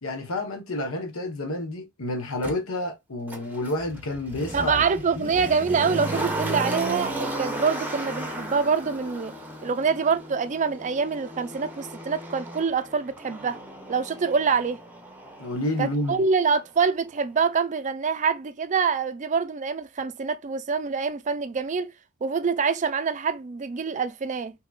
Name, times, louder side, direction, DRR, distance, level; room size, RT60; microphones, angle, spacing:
voice 1, 0.0-4.9 5.2-5.3 15.4-16.2, left 1 dB, 80° left, 1.0 m, -30 dB
Motor vehicle (road), 2.4-2.5 3.3-16.2 16.5-16.6, right 1 dB, 10° right, 0.7 m, -35 dB
voice 2, 4.5-9.3 9.6-13.6 13.9-14.8 15.8-21.9 22.2-24.5, right 5 dB, 35° right, 0.4 m, -25 dB
3.6 x 2.8 x 2.3 m
head